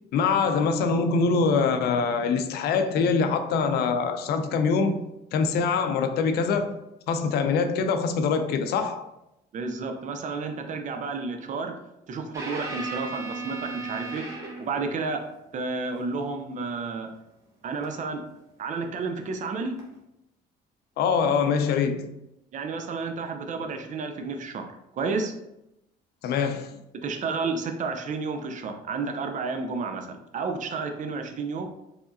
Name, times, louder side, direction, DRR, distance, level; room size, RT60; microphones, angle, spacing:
voice 1, 0.1-6.8 7.1-9.1 21.0-22.1 26.2-26.8, left 5 dB, 70° left, 0.5 m, -24 dB
voice 2, 9.5-11.7 12.1-14.2 14.6-15.2 15.5-17.1 17.6-18.2 18.6-19.7 22.5-25.3 27.0-31.7, right 4 dB, 50° right, 0.7 m, -31 dB
sound 1, 12.3-14.8 17.8-18.0 19.8-19.9, right 3 dB, 20° right, 1.3 m, -35 dB
4.8 x 3.5 x 2.7 m
cardioid pair, 110°, 17 cm